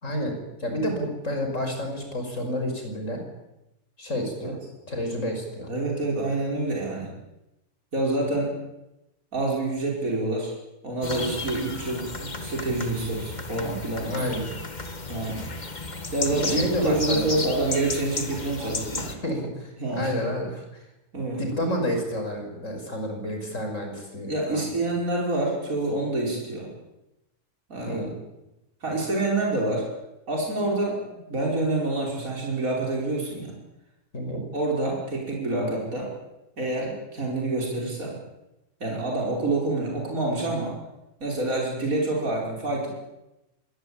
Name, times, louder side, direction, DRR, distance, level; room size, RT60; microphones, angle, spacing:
voice 1, 0.0-3.2 4.0-4.6 4.9-5.7 6.4-6.5 14.1-14.5 16.4-17.3 19.1-20.6 21.4-24.7 27.9-28.1 34.1-34.4, equal, 55° left, 4 dB, 6.2 m, -30 dB
voice 2, 5.7-7.1 7.9-8.6 9.3-10.5 10.8-14.2 15.1-15.5 16.1-19.2 19.8-20.1 21.1-21.4 24.2-26.7 27.7-28.0 28.8-29.9 30.3-33.6 34.5-36.1 36.6-38.2 38.8-40.8 41.2-42.9, right 2 dB, 60° right, -2 dB, 5.9 m, -27 dB
sound 1, 11.0-19.1, left 3 dB, 30° left, 1.7 m, -33 dB
25.5 x 19.0 x 8.8 m, 0.94 s
omnidirectional pair, 1.6 m